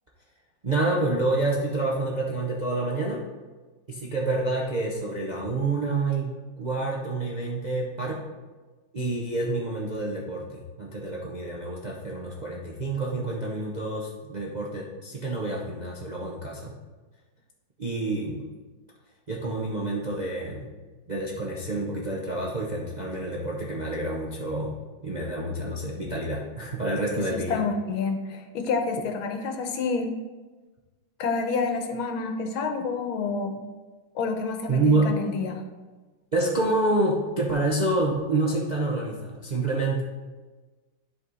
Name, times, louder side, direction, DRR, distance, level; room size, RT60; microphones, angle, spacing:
voice 1, 0.6-3.2 3.9-8.2 8.9-16.7 17.8-18.5 19.3-20.7 21.1-24.8 25.0-27.7 34.7-35.2 36.3-40.0, right 2 dB, 45° right, -3 dB, 0.5 m, -28 dB
voice 2, 27.5-30.1 31.2-33.6 34.1-35.6, left 4 dB, 90° left, 5 dB, 1.6 m, -28 dB
11.0 x 4.2 x 4.0 m, 1.3 s
omnidirectional pair, 2.2 m